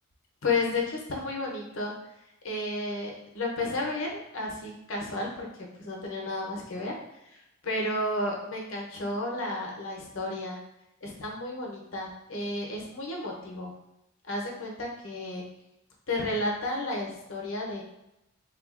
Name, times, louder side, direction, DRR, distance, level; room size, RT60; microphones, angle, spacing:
voice 1, 0.4-1.9 2.4-6.9 7.3-7.4 7.6-10.6 11.0-13.7 14.3-15.4 16.1-17.8, left 2 dB, 70° left, -1 dB, 0.7 m, -32 dB
3.6 x 2.3 x 2.4 m, 0.85 s
head